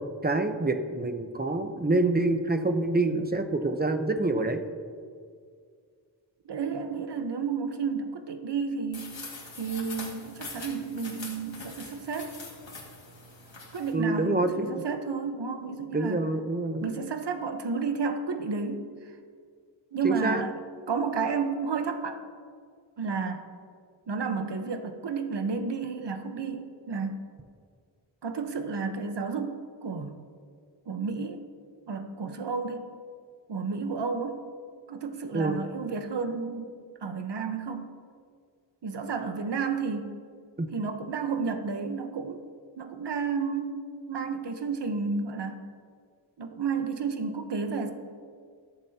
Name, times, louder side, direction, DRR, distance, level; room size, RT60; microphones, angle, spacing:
voice 1, 0.2-4.6 13.9-14.8 15.9-16.9 20.0-20.4 35.3-35.6 40.6-40.7, right 2 dB, 20° right, 7 dB, 0.9 m, -26 dB
voice 2, 6.4-9.1 9.6-12.3 13.7-16.2 16.8-19.1 19.9-20.6 20.9-22.2 23.0-23.4 24.1-27.2 28.2-30.2 30.9-31.4 31.9-32.9 33.5-34.4 34.9-36.7 37.0-37.9 38.8-40.2 40.7-42.4 42.8-43.8 44.1-45.6 46.4-47.9, right 5 dB, 65° right, 6 dB, 1.1 m, -31 dB
sound 1, 8.9-13.9, left 3 dB, 75° left, 2.2 m, -43 dB
21.5 x 7.2 x 2.9 m, 2.1 s
wide cardioid pair, 70°, 45 cm